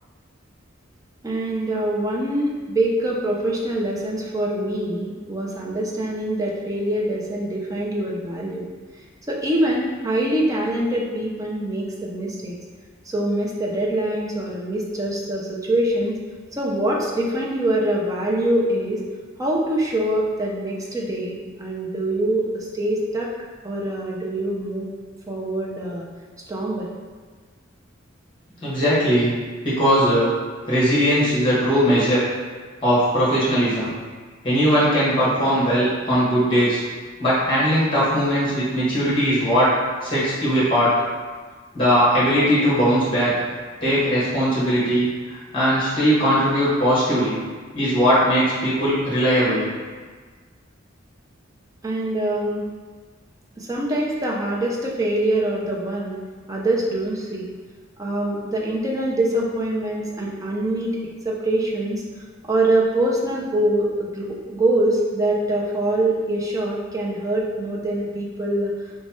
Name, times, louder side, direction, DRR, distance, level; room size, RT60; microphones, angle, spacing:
voice 1, 1.2-8.7 9.3-12.6 13.1-16.2 16.5-19.0 19.4-23.3 23.6-24.9 25.3-26.1 26.5-26.9 51.8-52.6 53.6-56.2 56.5-57.5 58.0-61.0 61.2-62.0 62.4-68.7, right 1 dB, 15° right, -3 dB, 0.5 m, -24 dB
voice 2, 28.6-29.3 29.6-30.3 30.7-32.2 32.8-33.9 34.4-36.8 37.2-39.7 40.0-40.9 41.7-43.3 43.8-47.3 47.7-49.7, equal, 25° left, -9 dB, 1.4 m, -19 dB
3.1 x 2.3 x 4.2 m, 1.5 s
head